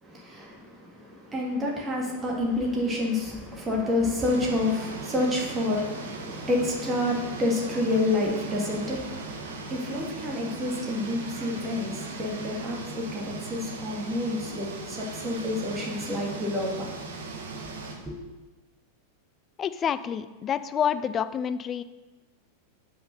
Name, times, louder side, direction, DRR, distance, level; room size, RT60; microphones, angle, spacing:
voice 1, 0.0-17.1 18.0-18.2, left 2 dB, 15° right, -2 dB, 1.9 m, -29 dB
sound 1, 4.2-17.9, right 3 dB, 65° right, 1.2 m, -38 dB
voice 2, 19.6-21.8, left 8 dB, 25° left, 13 dB, 0.4 m, -28 dB
5.5 x 5.5 x 6.7 m, 1.2 s
figure-of-eight pair, 90°, 0 cm